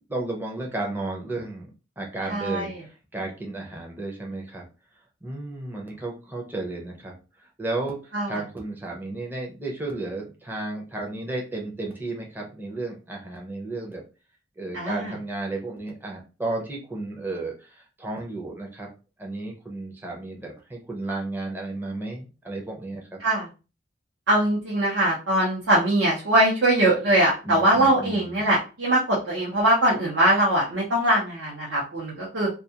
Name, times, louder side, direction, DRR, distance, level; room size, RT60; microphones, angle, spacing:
voice 1, 0.1-1.7 2.0-4.6 5.2-14.0 14.6-18.9 19.2-23.2 27.4-28.4, right 2 dB, 10° right, -1 dB, 0.5 m, -33 dB
voice 2, 2.3-2.8 8.1-8.4 14.7-15.1 23.2-23.5 24.3-32.5, right 1 dB, 80° right, -5 dB, 0.8 m, -22 dB
2.3 x 2.3 x 2.8 m, 0.33 s
head